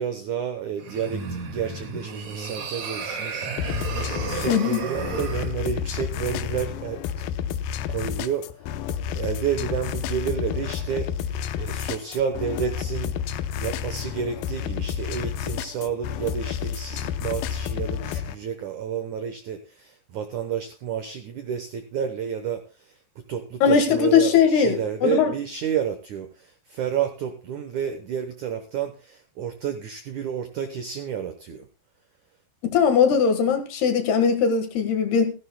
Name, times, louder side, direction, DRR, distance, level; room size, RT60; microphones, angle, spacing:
voice 1, 0.0-7.2 7.9-8.5 9.1-13.2 13.6-22.9 23.3-31.7, right 8 dB, 80° right, 1.7 m, -30 dB
sound 1, 0.8-5.5, right 5 dB, 50° right, 2.8 m, -33 dB
sound 2, 3.6-18.4, left 9 dB, 85° left, 2.1 m, -30 dB
voice 2, 4.5-4.8 23.6-25.3 32.6-35.3, left 6 dB, 70° left, 3.4 m, -20 dB
16.5 x 15.5 x 2.2 m
omnidirectional pair, 5.0 m